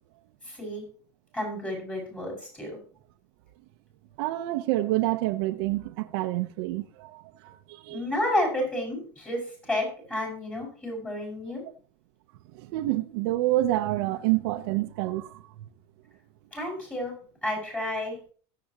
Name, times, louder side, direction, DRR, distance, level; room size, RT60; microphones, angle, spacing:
voice 1, 0.4-0.8 1.3-2.8 7.9-11.6 16.5-17.1 17.4-18.2, left 1 dB, 10° left, 5.5 m, -31 dB
voice 2, 4.2-8.0 12.5-15.7, right 16 dB, 70° right, 0.8 m, -28 dB
22.0 x 7.8 x 2.9 m
supercardioid pair, 135°, 13 cm